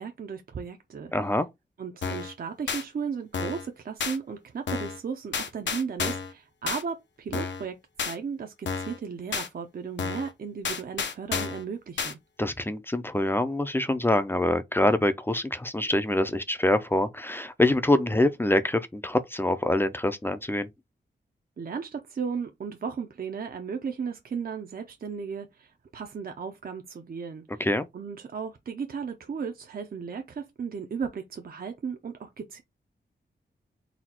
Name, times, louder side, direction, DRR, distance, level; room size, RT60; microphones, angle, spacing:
voice 1, 0.0-1.1 1.8-12.2 21.6-27.6 27.9-32.6, right 6 dB, 50° right, 0.6 m, -35 dB
voice 2, 1.1-1.5 12.4-20.7 27.6-27.9, left 1 dB, 10° left, 0.4 m, -25 dB
sound 1, 2.0-2.3 2.7-2.8 3.3-3.7 4.0-4.2 4.7-5.0 5.3-6.3 6.7-6.8 7.3-7.7 8.0-8.2 8.7-9.0 9.3-9.5 10.0-10.3 10.6-11.6 12.0-12.1, left 5 dB, 75° left, 0.8 m, -31 dB
4.1 x 2.3 x 4.2 m
wide cardioid pair, 140°, 19 cm